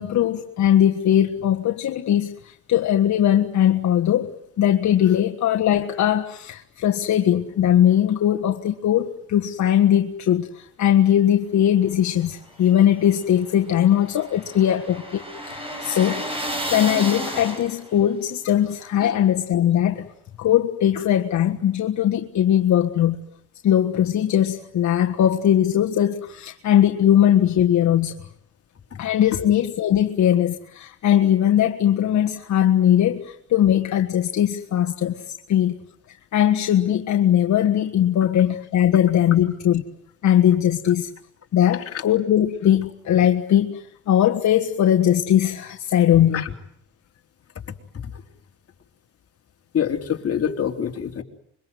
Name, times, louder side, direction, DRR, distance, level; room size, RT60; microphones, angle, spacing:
voice 1, 0.0-20.1 20.4-23.2 23.6-28.2 29.0-35.8 36.1-39.8 40.2-41.1 41.5-46.4, left 10 dB, 70° left, 1.6 m, -20 dB
sound 1, 12.5-18.0, equal, 20° right, 8.0 m, -32 dB
voice 2, 49.7-51.2, left 8 dB, 50° left, 3.5 m, -25 dB
26.0 x 23.5 x 9.5 m
cardioid pair, 90°, 30 cm